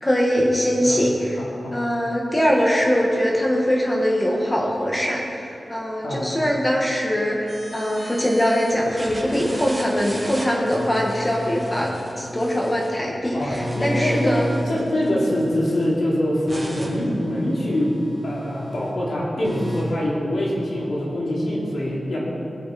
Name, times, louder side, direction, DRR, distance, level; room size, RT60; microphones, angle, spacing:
voice 1, 0.0-1.4 1.7-14.4, equal, 20° left, -2 dB, 1.8 m, -22 dB
voice 2, 1.4-1.8 6.0-6.3 13.3-17.9 18.2-22.2, left 1 dB, 75° left, -5 dB, 3.3 m, -24 dB
sound 1, 7.5-8.7 9.0-13.0 13.4-15.8 16.5-18.9 19.4-19.8, equal, 10° right, 2.9 m, -33 dB
19.0 x 7.5 x 4.4 m, 2.7 s
wide cardioid pair, 90°, 0 cm